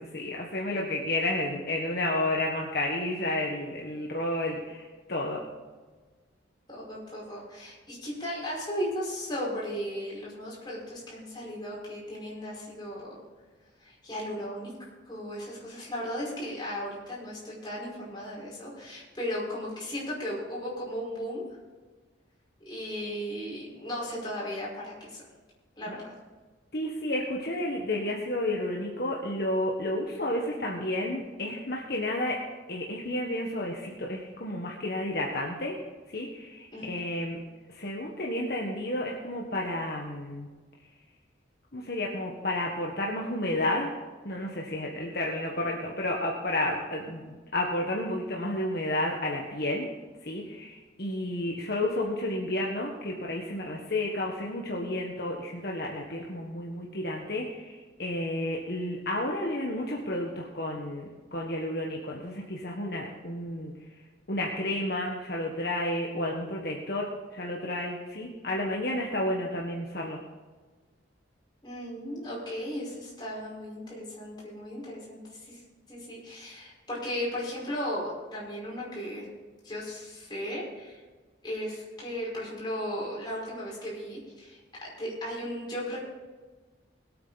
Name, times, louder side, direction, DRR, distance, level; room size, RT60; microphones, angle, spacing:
voice 1, 0.0-5.4 25.9-26.0 26.7-32.4 32.7-35.8 36.1-37.4 37.7-40.5 41.7-44.0 44.2-49.9 50.2-63.7 64.3-70.2, left 1 dB, 55° left, -1 dB, 1.5 m, -31 dB
voice 2, 6.7-13.2 13.8-14.7 15.0-21.5 22.6-25.2 25.8-26.1 36.7-36.9 71.6-75.6 75.9-79.3 79.6-81.0 81.4-86.0, equal, 25° left, -5 dB, 5.3 m, -36 dB
21.0 x 8.7 x 4.2 m, 1.3 s
head